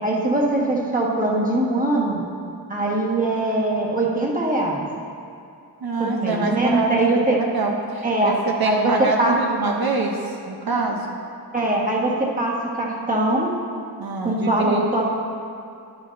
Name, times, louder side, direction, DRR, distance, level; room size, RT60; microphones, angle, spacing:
voice 1, 0.0-2.2 2.7-4.9 6.0-7.4 8.0-8.3 8.6-9.4 11.5-13.5 14.2-15.1, right 2 dB, 20° right, -3 dB, 1.4 m, -22 dB
voice 2, 5.8-11.2 14.0-14.8, right 3 dB, 65° right, 0 dB, 0.8 m, -25 dB
10.5 x 9.6 x 2.6 m, 2.5 s
wide cardioid pair, 85°, 38 cm